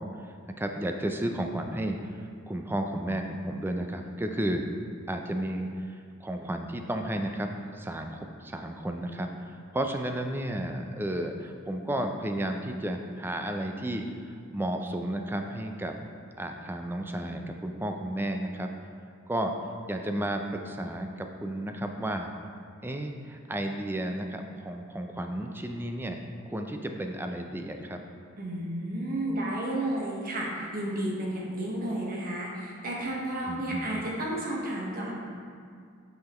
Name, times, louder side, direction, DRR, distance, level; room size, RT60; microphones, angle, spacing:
voice 1, 0.0-4.7 5.1-7.5 7.7-14.0 14.5-16.0 16.4-18.7 19.3-19.5 19.9-22.3 22.8-28.0 33.4-34.0, right 1 dB, 10° right, 4 dB, 0.4 m, -33 dB
voice 2, 28.4-35.1, right 1 dB, 45° right, -3 dB, 1.2 m, -32 dB
8.5 x 5.7 x 3.0 m, 2.2 s
head